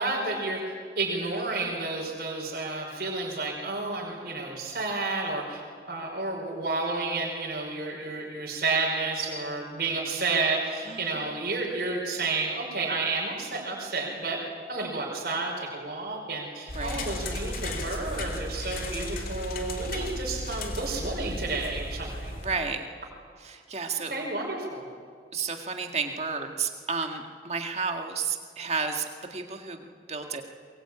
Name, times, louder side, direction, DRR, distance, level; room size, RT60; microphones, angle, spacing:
voice 1, 0.0-14.4 14.7-22.3 24.1-24.8, right 3 dB, 55° right, -2 dB, 5.1 m, -31 dB
voice 2, 10.9-11.4 16.7-17.1 22.3-22.9 23.4-24.1 25.3-29.1 29.3-30.4, right 5 dB, 35° right, 4 dB, 1.9 m, -32 dB
sound 1, 16.7-22.6, left 1 dB, 50° left, 2.8 m, -35 dB
22.5 x 22.0 x 8.7 m, 2.1 s
head